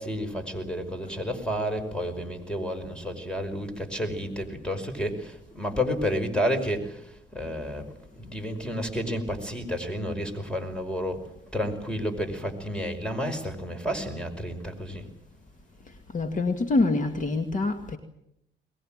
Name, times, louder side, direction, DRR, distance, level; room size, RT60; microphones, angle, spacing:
voice 1, 0.0-11.2 11.5-15.1, equal, 5° left, 7 dB, 5.2 m, -31 dB
voice 2, 16.1-18.0, left 3 dB, 40° left, 7 dB, 2.2 m, -25 dB
22.5 x 20.5 x 8.9 m, 0.80 s
cardioid pair, 90°, 20 cm